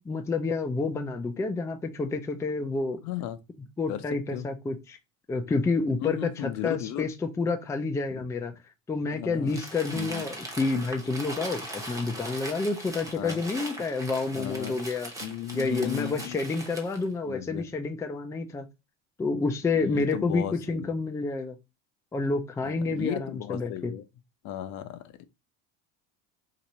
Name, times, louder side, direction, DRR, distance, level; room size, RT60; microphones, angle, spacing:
voice 1, 0.1-3.0 3.8-5.0 5.3-8.5 8.9-15.1 15.5-18.7 19.2-21.6 22.1-23.9, left 3 dB, 10° left, 0.4 m, -29 dB
voice 2, 3.0-3.4 3.9-4.0 4.3-4.5 6.0-7.1 8.1-8.2 9.1-9.6 9.9-10.2 13.2-13.4 14.3-14.8 15.2-16.4 17.3-17.7 19.8-20.9 22.6-24.0 24.4-25.3, left 12 dB, 55° left, 0.6 m, -35 dB
Crumpling crinkling, 9.5-17.1, right 1 dB, 10° right, 0.9 m, -40 dB
2.9 x 2.5 x 4.1 m
supercardioid pair, 115°, 34 cm